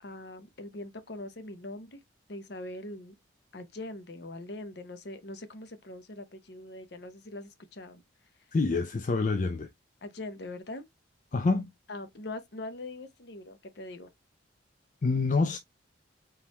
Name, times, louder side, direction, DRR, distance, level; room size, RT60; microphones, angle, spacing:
voice 1, 0.0-2.0 2.3-3.1 3.5-8.0 10.0-10.9 11.9-14.1, left 2 dB, 55° left, 0.8 m, -42 dB
voice 2, 8.5-9.7 11.3-11.7 15.0-15.6, left 3 dB, 40° left, 0.4 m, -26 dB
4.2 x 3.7 x 2.9 m
head